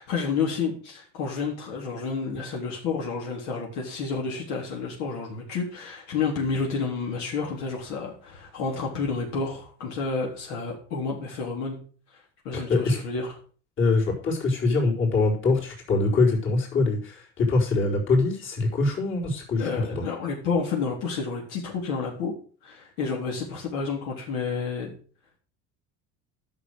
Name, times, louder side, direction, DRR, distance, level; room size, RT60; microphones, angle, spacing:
voice 1, 0.0-11.8 12.4-13.3 19.6-22.3 22.6-24.9, left 5 dB, 75° left, -1 dB, 3.7 m, -30 dB
voice 2, 12.5-13.0 13.8-19.7 20.0-20.1, left 3 dB, 40° left, -2 dB, 4.5 m, -23 dB
11.0 x 6.8 x 6.3 m, 0.41 s
cardioid pair, 135°, 30 cm